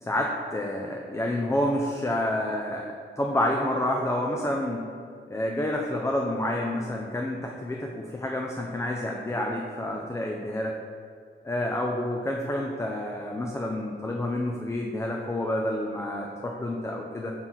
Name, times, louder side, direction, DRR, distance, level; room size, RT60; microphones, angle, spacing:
voice 1, 0.0-4.8 5.3-10.8 11.4-17.3, left 1 dB, 15° left, 0 dB, 0.4 m, -29 dB
5.6 x 4.4 x 3.9 m, 2.1 s
wide cardioid pair, 120°, 21 cm